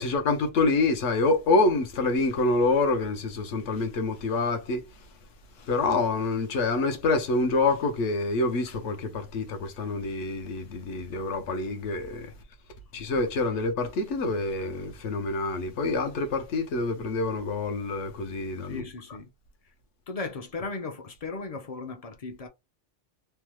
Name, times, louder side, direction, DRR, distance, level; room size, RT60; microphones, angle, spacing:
voice 1, 0.0-4.8 5.6-12.3 12.9-18.8, left 3 dB, 75° left, 1.0 m, -26 dB
voice 2, 18.7-19.3 20.1-22.5, left 3 dB, 50° left, 0.5 m, -36 dB
3.4 x 2.0 x 3.0 m
omnidirectional pair, 1.2 m